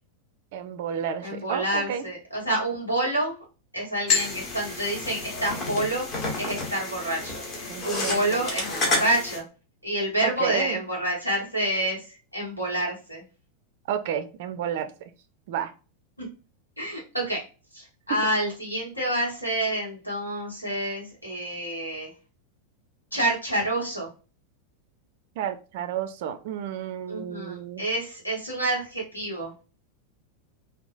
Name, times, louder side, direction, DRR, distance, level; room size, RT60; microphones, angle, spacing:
voice 1, 0.5-2.0 7.7-8.4 10.2-10.8 13.9-14.9 15.5-15.7 25.4-27.8, right 9 dB, 50° right, 10 dB, 0.3 m, -31 dB
voice 2, 1.2-3.3 3.7-6.0 6.4-7.4 7.8-9.4 9.8-12.0 12.3-13.2 16.2-16.3 16.8-17.4 17.7-22.1 23.1-24.1 27.1-29.5, right 1 dB, 85° left, -3 dB, 1.3 m, -28 dB
sound 1, 4.1-9.4, left 3 dB, 35° left, 1.1 m, -29 dB
3.7 x 2.4 x 2.5 m, 0.34 s
figure-of-eight pair, 90°, 0 cm